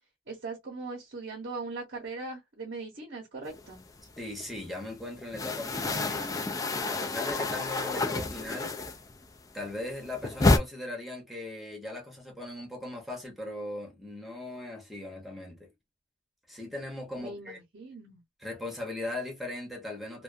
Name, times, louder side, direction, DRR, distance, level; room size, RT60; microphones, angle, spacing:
voice 1, 0.3-3.8 17.2-18.2, right 3 dB, 55° right, 0.8 m, -40 dB
sound 1, 3.6-4.6 4.8-9.3 9.6-10.6, left 2 dB, 20° left, 0.3 m, -29 dB
voice 2, 4.2-8.8 9.5-15.7 16.5-17.6 18.4-20.2, left 2 dB, ahead, 0.8 m, -39 dB
2.4 x 2.2 x 2.4 m
head